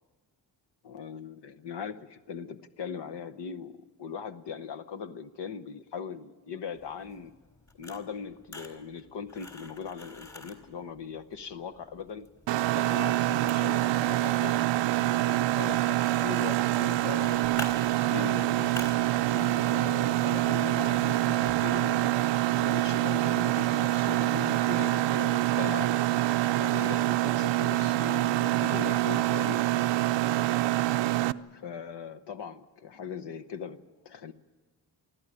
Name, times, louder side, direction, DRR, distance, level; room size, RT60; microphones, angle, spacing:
voice 1, 0.8-7.3 7.8-12.3 12.7-17.4 18.1-18.9 19.3-26.3 26.6-29.6 31.2-34.3, left 6 dB, 70° left, 10 dB, 1.1 m, -40 dB
sound 1, 6.7-23.3, left 1 dB, 40° left, 3.7 m, -49 dB
Mechanisms, 12.5-31.3, right 16 dB, 85° right, 0.6 m, -26 dB
24.0 x 14.0 x 9.9 m, 1.3 s
cardioid pair, 100°, 42 cm